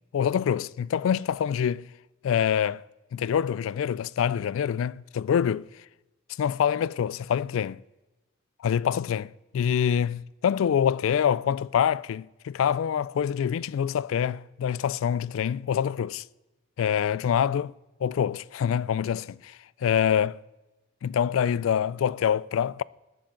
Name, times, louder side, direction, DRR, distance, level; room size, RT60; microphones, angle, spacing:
voice 1, 0.1-1.9 2.2-2.8 3.1-5.7 6.4-7.8 8.6-16.2 16.8-17.7 18.0-20.4 21.0-22.8, left 8 dB, 90° left, 0.3 m, -25 dB
20.0 x 6.7 x 3.8 m
head